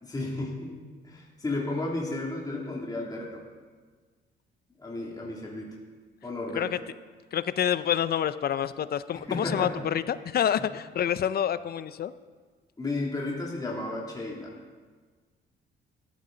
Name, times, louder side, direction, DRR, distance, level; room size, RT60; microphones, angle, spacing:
voice 1, 0.0-0.8 1.0-3.4 4.8-5.8 6.2-6.7 9.3-9.9 12.8-14.5, left 2 dB, 20° left, -3 dB, 2.7 m, -33 dB
voice 2, 7.3-12.1, left 9 dB, 50° left, 14 dB, 0.5 m, -27 dB
14.0 x 12.0 x 3.9 m, 1.5 s
cardioid pair, 90°, 20 cm